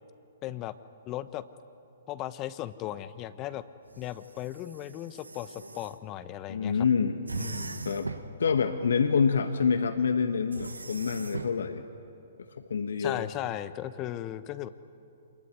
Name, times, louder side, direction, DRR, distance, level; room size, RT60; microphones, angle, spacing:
voice 1, 0.4-0.8 1.1-1.4 2.1-3.6 4.0-6.9 7.4-7.8 13.0-14.7, left 13 dB, 30° left, 13 dB, 1.0 m, -37 dB
sound 1, 3.9-5.9 7.3-8.4 10.5-11.6, right 3 dB, 90° right, 1.4 m, -39 dB
voice 2, 6.5-7.2 7.8-8.1 8.4-11.8 12.7-13.3, left 6 dB, 70° left, 7 dB, 1.4 m, -26 dB
27.0 x 20.5 x 9.8 m, 2.7 s
figure-of-eight pair, 125°, 0 cm